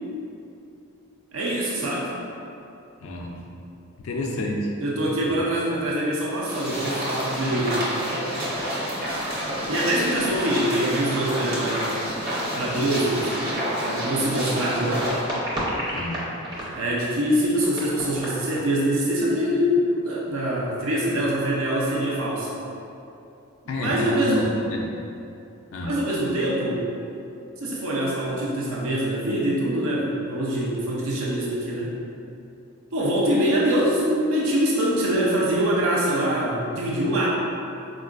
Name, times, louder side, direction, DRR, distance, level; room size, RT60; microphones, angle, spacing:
voice 1, 1.3-2.1 4.2-4.3 4.8-7.8 9.7-12.0 12.5-13.5 13.8-15.1 16.7-22.6 23.8-24.5 25.8-26.8 27.6-32.0 32.9-37.3, right 1 dB, 75° right, -5 dB, 0.5 m, -24 dB
voice 2, 3.0-3.5 4.0-4.7 5.2-5.4 15.9-16.3 23.7-24.9 25.7-25.9, left 1 dB, 75° left, 0 dB, 0.3 m, -29 dB
sound 1, 6.4-15.2, equal, 45° right, 0.9 m, -29 dB
sound 2, 12.8-12.9 13.5-13.6 14.5-17.1 17.4-18.9 19.1-19.2 19.4-19.5 19.8-20.0 20.4-20.9, equal, 20° right, 0.6 m, -33 dB
4.4 x 2.4 x 2.4 m, 2.7 s
head